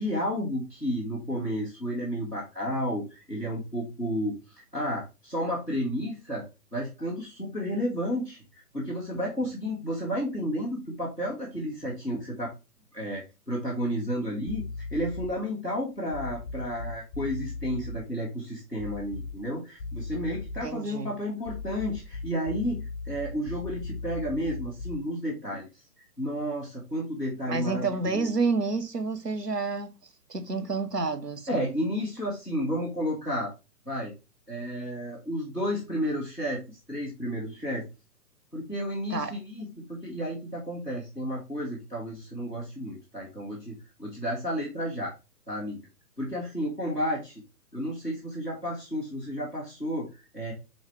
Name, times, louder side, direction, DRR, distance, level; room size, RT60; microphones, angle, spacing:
voice 1, 0.0-12.5 12.9-25.7 26.2-28.3 31.5-33.5 33.8-34.1 34.5-37.9 38.5-45.1 45.5-45.8 46.2-47.4 47.7-50.5, equal, ahead, 0.6 m, -32 dB
sound 1, 14.5-15.4 16.1-18.0 18.8-19.5 19.8-20.8 21.4-25.1, left 3 dB, 15° left, 1.0 m, -38 dB
voice 2, 20.6-21.1 27.5-29.9 30.3-31.7 39.1-39.3, right 3 dB, 90° right, 1.0 m, -29 dB
5.1 x 4.0 x 4.7 m
figure-of-eight pair, 130°, 47 cm